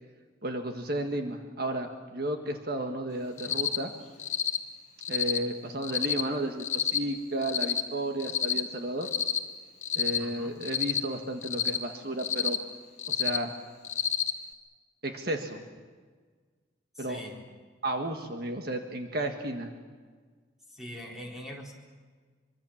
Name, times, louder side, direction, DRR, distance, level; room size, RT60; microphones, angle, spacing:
voice 1, 0.4-3.9 5.1-9.1 9.9-12.6 13.1-13.5 15.0-15.6 17.0-17.2 17.8-19.7, right 1 dB, 50° right, 4 dB, 1.7 m, -33 dB
Cricket, 3.4-3.8 4.2-4.6 5.0-5.4 5.8-6.2 6.6-7.0 7.4-7.8 8.2-8.6 9.0-9.4 9.8-10.2 10.6-11.0 11.4-11.8 12.2-12.6 13.0-13.4 13.8-14.3, left 8 dB, 40° left, 1.4 m, -28 dB
voice 2, 10.2-10.5 17.0-17.3 20.7-21.7, equal, ahead, -2 dB, 4.1 m, -42 dB
25.0 x 24.0 x 7.3 m, 1.5 s
head